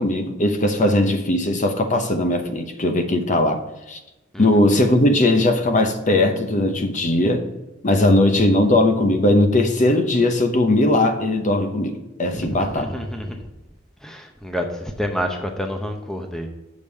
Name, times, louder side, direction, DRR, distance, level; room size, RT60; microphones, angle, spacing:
voice 1, 0.0-3.6 3.9-4.0 4.4-7.4 7.8-12.9, left 1 dB, 40° left, 6 dB, 0.9 m, -19 dB
voice 2, 12.3-13.4 14.0-16.5, equal, 5° left, 3 dB, 0.7 m, -28 dB
7.2 x 5.1 x 6.4 m, 0.97 s
head